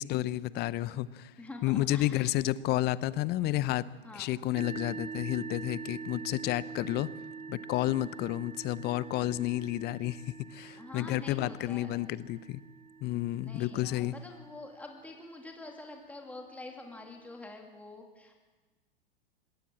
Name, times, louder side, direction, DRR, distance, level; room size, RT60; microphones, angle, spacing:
voice 1, 0.0-1.3 1.6-3.8 4.1-7.1 7.5-10.2 10.5-12.6 13.0-14.2, left 15 dB, 35° left, 19 dB, 0.7 m, -31 dB
voice 2, 1.4-2.3 4.0-4.3 10.7-12.1 13.4-18.3, left 2 dB, 5° left, 2 dB, 2.6 m, -46 dB
sound 1, 4.5-16.1, right 5 dB, 25° right, 3.0 m, -45 dB
20.5 x 17.0 x 7.6 m, 1.2 s
hypercardioid pair, 100°, 29 cm